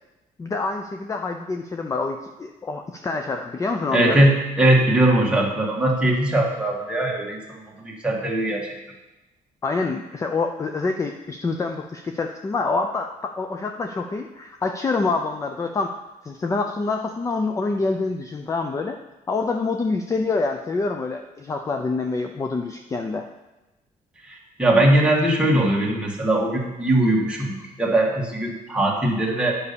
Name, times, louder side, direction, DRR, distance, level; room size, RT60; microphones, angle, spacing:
voice 1, 0.4-4.2 9.6-15.9 16.2-19.0 19.3-23.3, left 3 dB, 20° left, 5 dB, 0.5 m, -26 dB
voice 2, 3.9-8.8 24.3-29.6, right 1 dB, 5° right, -3 dB, 1.7 m, -20 dB
9.5 x 5.5 x 6.8 m, 1.0 s
cardioid pair, 150°, 15 cm